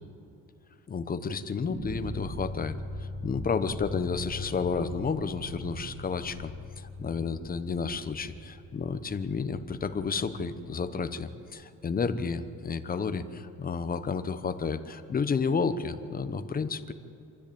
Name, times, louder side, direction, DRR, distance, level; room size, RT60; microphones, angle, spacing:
voice 1, 0.9-2.7 3.0-6.5 6.8-16.9, left 5 dB, 25° left, 10 dB, 0.9 m, -31 dB
sound 1, 1.6-10.7, left 1 dB, 35° right, 4.3 m, -41 dB
26.0 x 13.0 x 8.6 m, 2.8 s
cardioid pair, 150°, 34 cm